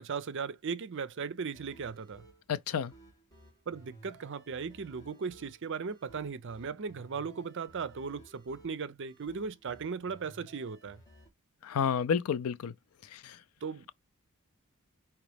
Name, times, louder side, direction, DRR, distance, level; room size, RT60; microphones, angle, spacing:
voice 1, 0.0-2.2 3.7-11.0 13.6-13.8, right 5 dB, 55° right, 0.5 m, -37 dB
sound 1, 1.5-11.3, right 1 dB, 15° left, 1.8 m, -57 dB
voice 2, 2.5-2.9 11.6-12.7 13.1-13.4, left 7 dB, 80° left, 0.4 m, -30 dB
5.0 x 3.0 x 3.4 m
head